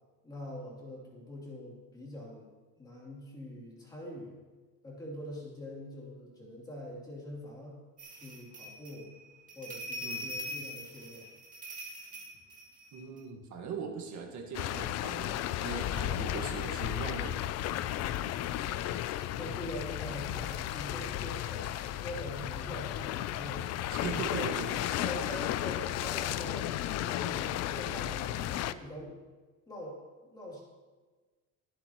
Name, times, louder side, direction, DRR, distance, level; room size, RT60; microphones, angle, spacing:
voice 1, 0.2-2.5 2.8-4.4 4.8-7.8 8.1-9.1 9.6-11.3 19.4-24.5 25.0-29.2 29.7-30.6, left 1 dB, 10° left, -4 dB, 2.9 m, -44 dB
sound 1, 8.0-13.2, equal, 25° right, 1.9 m, -43 dB
voice 2, 10.0-10.4 12.9-17.5 23.9-24.7, right 5 dB, 60° right, 2 dB, 1.7 m, -40 dB
sound 2, 14.5-28.7, left 12 dB, 55° left, 0.4 m, -34 dB
23.5 x 8.0 x 3.0 m, 1.3 s
cardioid pair, 180°, 32 cm